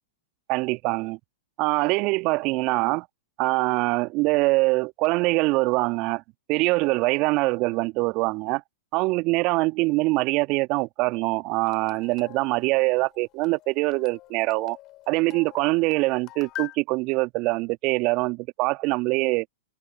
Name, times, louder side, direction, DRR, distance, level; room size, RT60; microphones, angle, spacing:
voice 1, 0.5-1.2 1.6-3.1 3.4-6.2 6.5-8.6 8.9-14.8 15.1-19.4, right 24 dB, 40° right, 1.6 m, -24 dB
sound 1, 11.6-16.8, left 17 dB, 35° left, 4.3 m, -44 dB
figure-of-eight pair, 105°, 0 cm